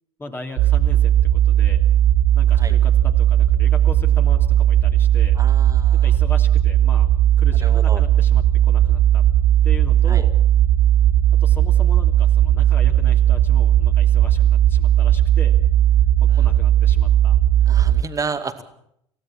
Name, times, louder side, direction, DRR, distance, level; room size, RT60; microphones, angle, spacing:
voice 1, 0.2-1.8 2.3-5.4 6.0-7.1 7.4-9.2 9.6-10.3 11.4-15.5 16.2-17.4, left 2 dB, 15° left, 4 dB, 2.9 m, -38 dB
sound 1, 0.6-18.0, right 11 dB, 50° right, 0.9 m, -16 dB
voice 2, 5.4-6.1 7.6-8.0 10.1-10.2 16.3-16.5 17.7-18.6, right 5 dB, 20° right, 9 dB, 2.2 m, -31 dB
28.0 x 16.5 x 6.0 m, 0.72 s
figure-of-eight pair, 70°, 16 cm